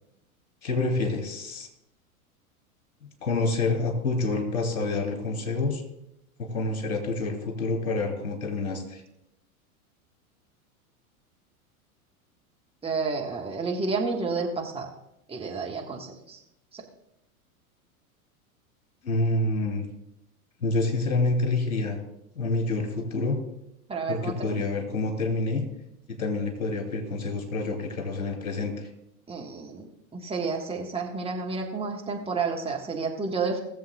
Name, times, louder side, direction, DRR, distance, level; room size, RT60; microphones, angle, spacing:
voice 1, 0.6-1.7 3.2-5.8 6.4-9.0 19.0-19.9 20.6-22.0 22.3-23.4 24.1-25.6 26.2-28.9, left 3 dB, 70° left, 4 dB, 3.0 m, -27 dB
voice 2, 12.8-14.9 15.3-16.4 16.7-16.8 23.9-24.6 29.3-33.6, right 4 dB, 15° right, 0 dB, 1.6 m, -30 dB
19.5 x 7.5 x 2.4 m, 0.81 s
figure-of-eight pair, 90°, 43 cm